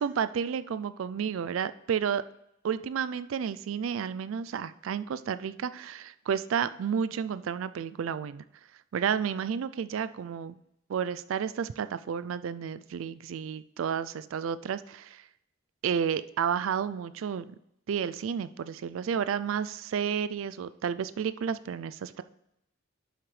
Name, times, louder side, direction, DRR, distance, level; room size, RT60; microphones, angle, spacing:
voice 1, 0.0-2.2 2.6-8.4 8.9-10.6 10.9-15.2 15.8-17.4 17.9-22.2, right 7 dB, 80° right, 14 dB, 0.4 m, -31 dB
10.5 x 6.1 x 3.3 m, 0.81 s
head